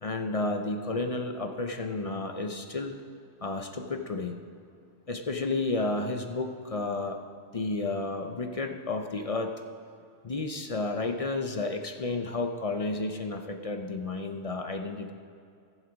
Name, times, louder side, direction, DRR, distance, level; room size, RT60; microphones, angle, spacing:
voice 1, 0.0-3.0 3.4-4.4 5.1-7.2 7.5-9.5 10.2-15.1, left 3 dB, 45° left, 4 dB, 0.5 m, -31 dB
15.0 x 7.3 x 5.1 m, 2.3 s
omnidirectional pair, 1.3 m